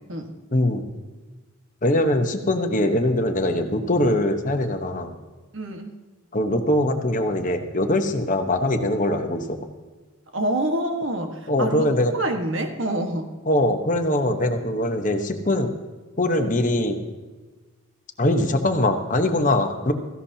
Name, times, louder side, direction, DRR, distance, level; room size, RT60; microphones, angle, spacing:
voice 1, 0.5-0.8 1.8-5.1 6.3-9.7 11.5-12.1 13.5-15.7 16.2-17.0 18.2-19.9, left 1 dB, 35° left, 6 dB, 1.0 m, -22 dB
voice 2, 5.5-5.9 10.3-13.3, right 1 dB, 60° right, 4 dB, 1.5 m, -27 dB
17.0 x 15.5 x 2.8 m, 1.3 s
head